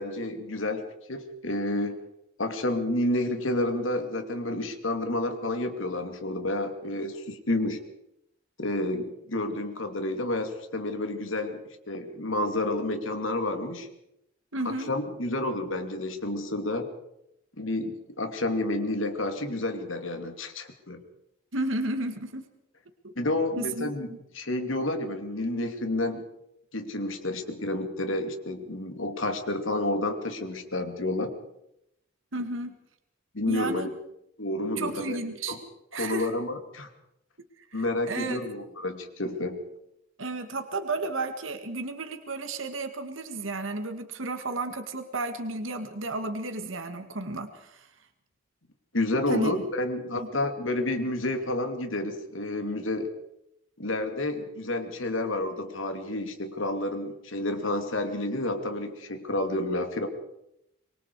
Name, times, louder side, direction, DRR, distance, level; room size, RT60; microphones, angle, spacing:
voice 1, 0.0-2.0 2.4-7.8 8.6-11.6 11.9-13.9 14.6-16.9 17.6-21.0 23.2-24.1 24.3-26.2 26.7-31.3 33.3-33.9 34.4-35.2 35.5-35.6 36.0-36.9 37.7-39.6 48.9-53.1 53.8-60.1, left 1 dB, 80° left, 6 dB, 2.7 m, -30 dB
voice 2, 14.5-14.9 21.5-22.5 23.0-24.2 32.3-32.8 33.5-33.9 34.8-35.6 35.9-36.3 37.6-38.4 40.2-47.9 49.3-49.5 50.2-50.3, right 2 dB, 80° right, 8 dB, 1.9 m, -33 dB
25.0 x 23.0 x 4.8 m, 0.82 s
head